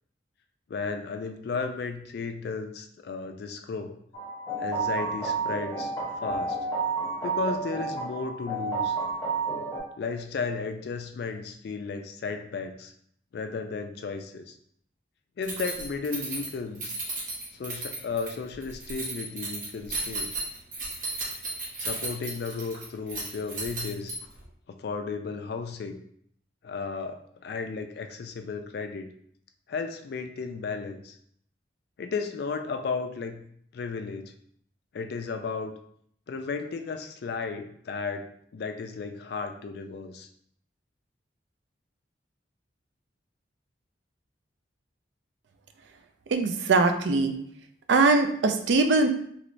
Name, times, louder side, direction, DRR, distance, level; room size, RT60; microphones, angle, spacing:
voice 1, 0.7-4.0 4.6-5.9 6.2-6.6 7.2-9.0 10.0-12.9 13.3-14.5 15.4-16.9 17.5-20.3 21.8-24.2 24.7-26.0 26.6-29.1 29.7-31.2 32.0-33.4 33.7-34.3 34.9-35.7 36.3-40.3, left 4 dB, 55° left, 7 dB, 0.3 m, -34 dB
sound 1, 4.1-9.8, right 4 dB, 15° left, 0.6 m, -30 dB
Keys jangling, 15.4-24.4, right 2 dB, 45° right, 0.8 m, -35 dB
voice 2, 46.3-47.3 47.9-49.1, right 3 dB, 65° right, 6 dB, 0.4 m, -21 dB
3.1 x 3.0 x 2.5 m, 0.66 s
head